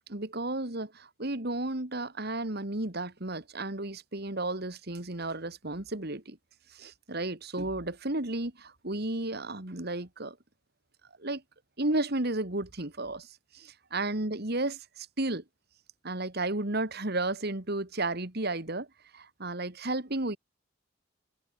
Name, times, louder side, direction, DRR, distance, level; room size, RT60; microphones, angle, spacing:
voice 1, 0.1-6.4 6.7-10.4 11.2-11.4 11.8-13.3 13.5-15.4 16.0-18.9 19.1-20.4, right 2 dB, 55° right, 2.6 m, -33 dB
head